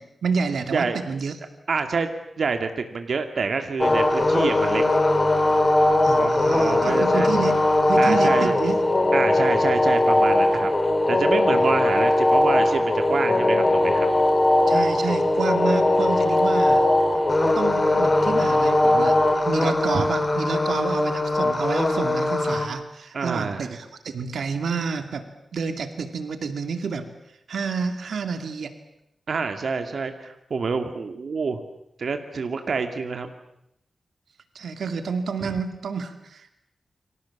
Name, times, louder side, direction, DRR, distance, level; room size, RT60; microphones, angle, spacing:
voice 1, 0.2-1.4 6.0-7.6 7.9-8.8 11.5-11.6 14.7-16.9 17.5-27.1 27.5-28.7 34.5-36.5, right 5 dB, 85° right, 8 dB, 2.4 m, -29 dB
voice 2, 1.7-2.1 2.4-4.8 6.2-7.3 8.0-8.6 9.1-10.7 11.1-14.1 19.6-20.0 23.1-23.7 29.3-31.6 32.0-33.3 35.4-35.5, right 4 dB, 60° right, 7 dB, 2.3 m, -27 dB
sound 1, 3.8-22.7, left 1 dB, 25° left, 4.1 m, -20 dB
29.5 x 25.0 x 7.3 m, 0.79 s
wide cardioid pair, 130°, 0 cm